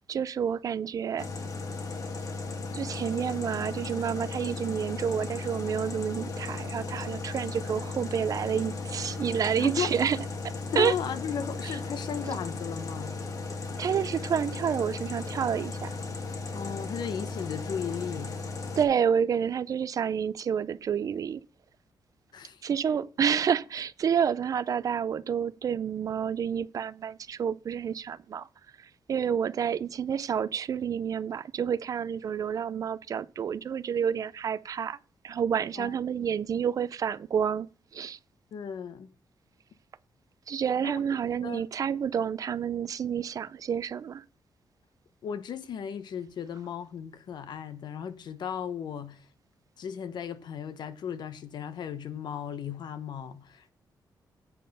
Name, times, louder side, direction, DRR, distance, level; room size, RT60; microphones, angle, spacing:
voice 1, 0.1-1.3 2.7-10.2 10.8-10.9 11.6-11.7 12.3-12.4 13.8-15.9 18.8-21.4 22.6-28.5 29.1-35.0 35.2-37.7 37.9-38.2 40.5-44.2, right 7 dB, 45° right, 0.4 m, -29 dB
sound 1, 1.2-18.9, left 3 dB, 45° left, 1.3 m, -36 dB
voice 2, 9.6-9.9 10.7-13.2 16.5-18.4 22.3-22.6 35.8-36.3 38.5-39.1 40.8-41.0 41.4-41.6 45.2-49.3 49.8-53.7, left 8 dB, 65° left, 0.9 m, -36 dB
8.3 x 5.4 x 5.4 m
wide cardioid pair, 160°, 8 cm